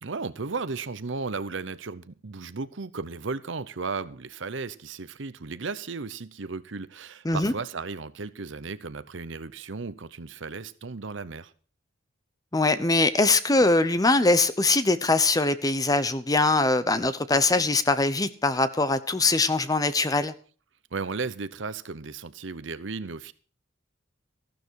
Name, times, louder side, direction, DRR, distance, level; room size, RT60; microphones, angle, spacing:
voice 1, 0.0-11.5 20.9-23.3, right 4 dB, 65° right, 0.8 m, -35 dB
voice 2, 12.5-20.3, left 2 dB, 20° left, 0.8 m, -22 dB
14.5 x 12.0 x 4.6 m
head